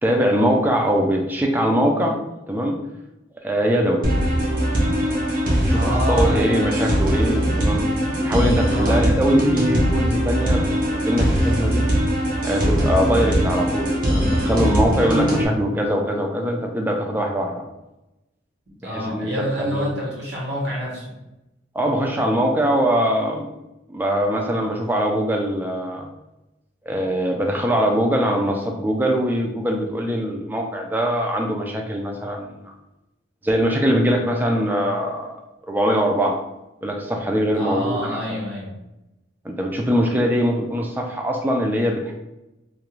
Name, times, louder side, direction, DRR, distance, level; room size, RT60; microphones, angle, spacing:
voice 1, 0.0-2.2 2.5-2.8 3.4-4.1 5.7-7.9 8.2-11.9 12.4-17.7 18.8-19.3 19.6-19.9 21.7-23.5 23.9-26.1 26.9-32.7 33.4-35.3 35.7-36.4 36.8-38.4 39.4-42.1, equal, 10° right, 1 dB, 0.3 m, -22 dB
sound 1, 4.0-15.5, equal, 45° right, 0.7 m, -21 dB
voice 2, 5.8-6.8 8.7-9.0 18.8-21.0 37.5-38.7, equal, 70° right, -5 dB, 1.1 m, -27 dB
2.4 x 2.3 x 3.0 m, 0.94 s
head